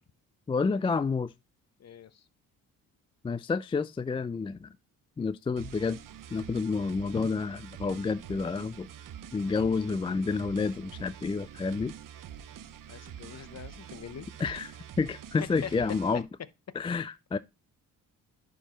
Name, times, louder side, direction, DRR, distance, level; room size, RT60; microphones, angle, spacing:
voice 1, 0.5-1.3 3.2-4.7 5.2-6.0 6.3-8.9 9.3-11.9 14.4-16.2 16.8-17.4, left 4 dB, 15° left, 0.3 m, -29 dB
voice 2, 1.8-2.2 7.1-7.3 12.9-14.5 15.6-15.7, left 8 dB, 40° left, 0.8 m, -43 dB
sound 1, 5.6-16.2, right 9 dB, 50° right, 0.8 m, -46 dB
10.5 x 4.7 x 3.0 m
hypercardioid pair, 50°, 41 cm